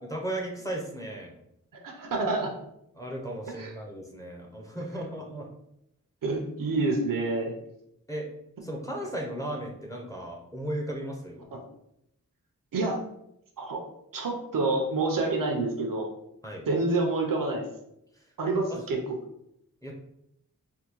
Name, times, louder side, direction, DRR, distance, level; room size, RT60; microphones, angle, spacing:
voice 1, 0.0-1.3 2.9-5.5 8.1-8.3 8.6-11.4 16.4-16.7 18.1-18.2 18.7-18.8 19.8-19.9, right 1 dB, 10° left, -1 dB, 0.6 m, -36 dB
voice 2, 1.7-2.6 3.5-3.7 4.9-5.0 6.2-7.5 11.5-11.6 12.7-13.0 13.6-13.8 14.1-16.1 16.7-17.7 18.4-19.0, right 3 dB, 65° right, 2 dB, 0.6 m, -28 dB
3.5 x 2.2 x 3.0 m, 0.79 s
wide cardioid pair, 45°, 35 cm